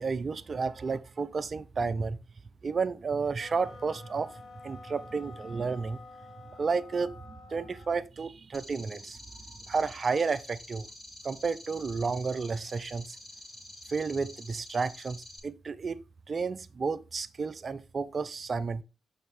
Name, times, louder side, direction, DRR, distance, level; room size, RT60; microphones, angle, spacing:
voice 1, 0.0-2.2 2.6-4.3 4.6-6.0 6.6-9.2 9.7-10.9 11.2-13.2 13.9-15.2 15.4-18.8, right 4 dB, 45° right, 0.7 m, -31 dB
sound 1, 3.4-8.0, left 3 dB, 60° left, 1.6 m, -49 dB
sound 2, 8.5-15.4, left 1 dB, 30° left, 4.1 m, -48 dB
6.8 x 5.8 x 3.6 m
supercardioid pair, 50°, 0 cm